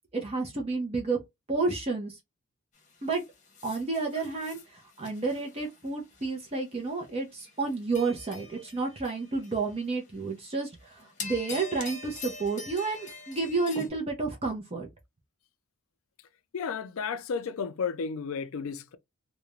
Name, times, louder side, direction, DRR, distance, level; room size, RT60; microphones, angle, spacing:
voice 1, 0.1-1.2 1.5-2.2 3.0-3.2 3.6-14.9, right 3 dB, 25° right, 0.5 m, -31 dB
sound 1, 2.8-6.4 6.9-7.1 7.4-9.9 10.2-10.6 11.0-13.9, left 3 dB, 35° left, 0.8 m, -44 dB
voice 2, 16.5-19.0, left 5 dB, 70° left, 0.4 m, -33 dB
2.4 x 2.1 x 2.9 m
head